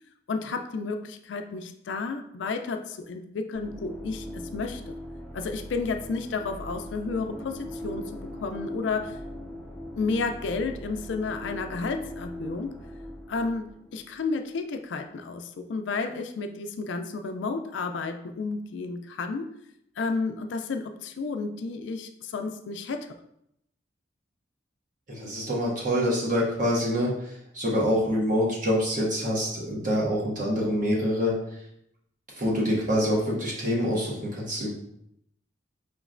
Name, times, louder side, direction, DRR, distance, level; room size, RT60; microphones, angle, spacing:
voice 1, 0.3-4.9 5.3-9.2 10.0-12.8 13.3-19.5 20.0-23.1, left 4 dB, 70° left, 6 dB, 0.4 m, -32 dB
sound 1, 3.5-14.3, left 1 dB, 5° left, 0.4 m, -40 dB
voice 2, 25.1-31.4 32.4-34.7, equal, 45° right, -4 dB, 1.2 m, -26 dB
5.1 x 3.0 x 2.5 m, 0.76 s
head